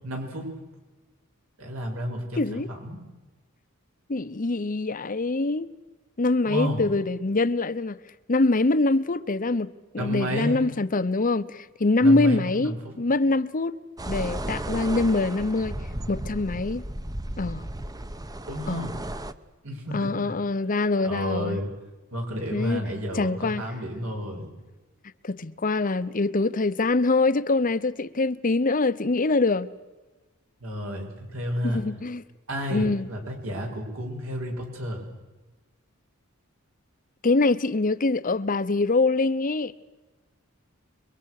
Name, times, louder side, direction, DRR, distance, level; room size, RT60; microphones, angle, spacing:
voice 1, 0.0-0.5 1.6-3.0 6.4-6.8 10.0-10.5 12.0-13.0 18.5-19.0 19.6-20.3 21.0-21.8 22.1-24.5 30.6-31.8 32.5-35.1, equal, 75° right, 7.1 m, -31 dB
voice 2, 2.4-2.7 4.1-5.7 6.2-8.0 8.3-9.7 9.9-13.8 14.1-15.8 16.1-16.8 17.4-17.7 18.7-18.9 19.9-21.6 22.5-22.8 23.2-23.6 25.2-29.7 31.6-32.2 32.7-33.1 37.2-39.7, left 3 dB, 40° left, 0.8 m, -24 dB
sound 1, 14.0-19.3, right 1 dB, 20° right, 0.9 m, -34 dB
28.5 x 23.0 x 6.6 m
head